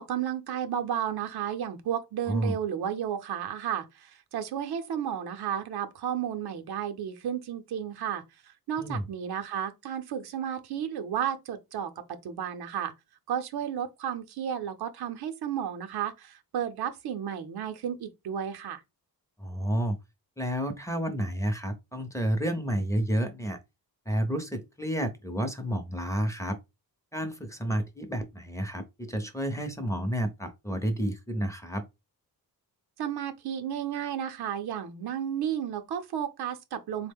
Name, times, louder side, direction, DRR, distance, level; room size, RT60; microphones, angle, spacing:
voice 1, 0.0-8.2 8.7-11.9 12.2-12.9 13.3-18.8 33.0-37.1, right 9 dB, 80° right, 0.7 m, -32 dB
voice 2, 19.4-20.0 20.4-23.6 24.1-26.6 27.1-31.9, equal, 10° left, 0.6 m, -30 dB
3.7 x 2.1 x 3.5 m
cardioid pair, 95°, 39 cm